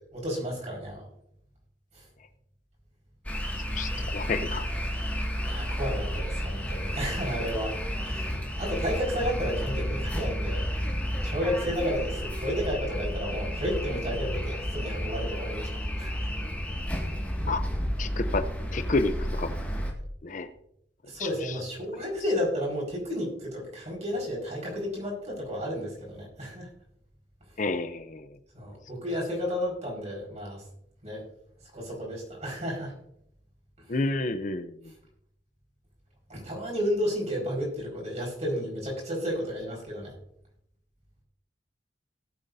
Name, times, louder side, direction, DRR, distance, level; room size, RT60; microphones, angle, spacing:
voice 1, 0.1-1.1 1.9-2.0 3.9-4.2 5.4-7.8 8.0-10.7 11.2-15.7 16.0-16.1 21.1-26.7 28.5-30.6 31.0-31.2 31.7-32.9 33.9-34.0 36.3-40.1, equal, 40° right, -2 dB, 4.9 m, -32 dB
sound 1, 3.3-19.9, equal, 10° left, 1.9 m, -31 dB
voice 2, 3.8-4.7 17.5-17.6 18.0-18.5 18.7-19.1 19.4-19.6 20.2-20.5 21.2-21.6 27.6-28.3 33.9-34.7, left 3 dB, 45° left, 10 dB, 0.6 m, -29 dB
18.0 x 8.2 x 2.7 m, 0.74 s
head